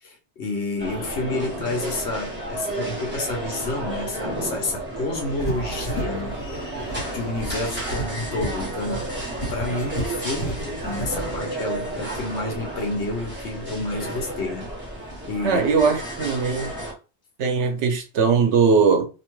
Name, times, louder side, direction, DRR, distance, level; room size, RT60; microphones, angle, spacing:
voice 1, 0.0-9.1 9.5-14.7 15.0-15.6, left 2 dB, 75° left, 1.1 m, -30 dB
sound 1, 0.8-16.9, right 1 dB, 10° right, 0.9 m, -32 dB
sound 2, 5.2-11.4, right 1 dB, 60° left, 1.4 m, -33 dB
voice 2, 15.4-16.7 17.4-19.1, right 5 dB, 80° right, 1.0 m, -20 dB
2.9 x 2.2 x 3.0 m
omnidirectional pair, 1.2 m